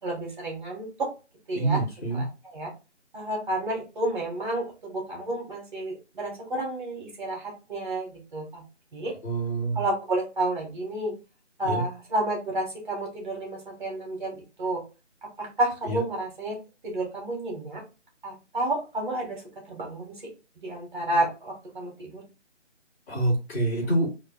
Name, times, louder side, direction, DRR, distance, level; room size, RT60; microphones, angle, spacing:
voice 1, 0.0-1.1 1.5-1.8 2.1-2.7 3.1-8.6 8.9-9.2 9.7-11.2 11.6-14.8 15.2-16.6 16.8-17.9 18.2-20.3 20.6-22.3, right 1 dB, 40° right, 0 dB, 1.9 m, -31 dB
voice 2, 1.5-2.2 9.2-9.8 11.6-11.8 15.8-16.0 23.1-24.1, right 2 dB, 15° left, -10 dB, 2.3 m, -26 dB
4.3 x 3.4 x 2.2 m, 0.30 s
figure-of-eight pair, 155°, 36 cm